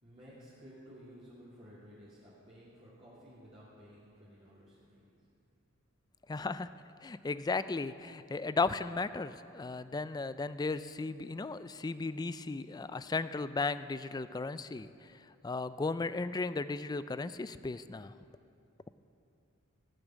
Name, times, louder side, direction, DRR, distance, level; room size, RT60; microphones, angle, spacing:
voice 1, 0.0-5.1, equal, 25° right, -10 dB, 2.5 m, -54 dB
voice 2, 6.3-6.7 7.0-18.2, left 3 dB, 20° left, 14 dB, 0.3 m, -35 dB
17.0 x 7.1 x 9.2 m, 2.7 s
head